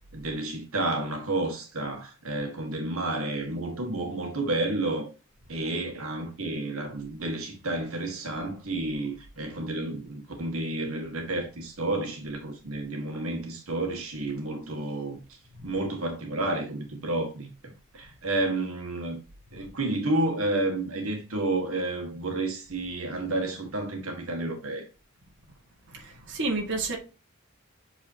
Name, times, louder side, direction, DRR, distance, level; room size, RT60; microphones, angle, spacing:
voice 1, 0.1-5.1 5.5-15.2 15.6-19.2 19.5-24.8, right 2 dB, 80° right, 1.8 m, -30 dB
voice 2, 25.9-27.0, right 3 dB, 60° right, 1.8 m, -31 dB
8.3 x 4.1 x 2.8 m
head